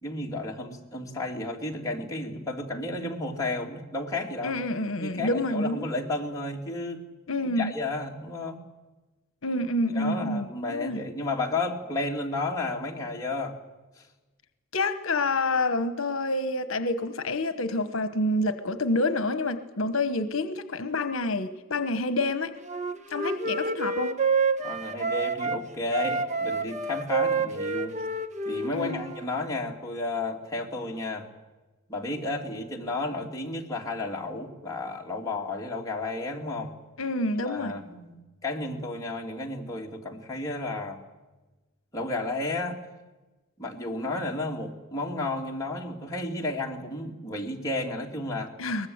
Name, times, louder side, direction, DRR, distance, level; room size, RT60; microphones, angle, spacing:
voice 1, 0.0-4.6 5.0-7.1 7.4-8.6 9.9-13.5 14.0-14.1 24.6-28.0 28.4-31.3 31.9-36.7 37.4-38.1 38.4-41.0 41.9-42.8 43.6-48.5, left 2 dB, 15° left, -1 dB, 2.7 m, -32 dB
voice 2, 4.4-5.9 7.3-7.7 9.4-11.0 14.7-22.5 23.1-24.1 28.7-29.0 37.0-37.7 48.6-48.9, left 2 dB, 70° left, 11 dB, 1.1 m, -28 dB
Wind instrument woodwind instrument, 22.7-25.6 25.9-29.3, right 4 dB, 35° right, 1.2 m, -28 dB
23.0 x 20.0 x 8.0 m, 1.2 s
head